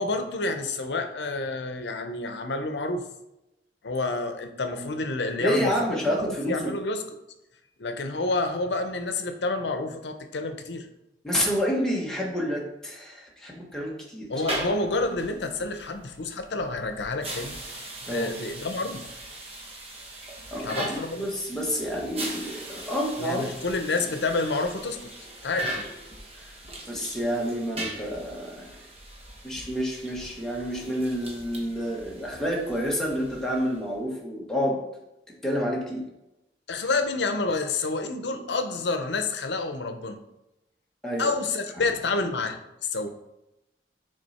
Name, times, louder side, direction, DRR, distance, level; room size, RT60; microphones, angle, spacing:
voice 1, 0.0-3.0 3.8-7.2 7.8-10.9 14.3-17.5 18.1-19.1 20.6-21.3 23.2-25.1 25.4-25.9 36.7-40.2 41.2-43.1, left 3 dB, 75° left, 8 dB, 0.7 m, -29 dB
voice 2, 5.4-6.7 11.2-14.3 18.1-18.3 20.5-23.4 26.9-28.7 29.4-34.8 35.4-36.0 41.0-41.3, equal, 5° left, -3 dB, 1.2 m, -29 dB
sound 1, 14.3-33.9, right 1 dB, 35° right, 1.1 m, -40 dB
6.5 x 3.8 x 4.2 m, 0.90 s
head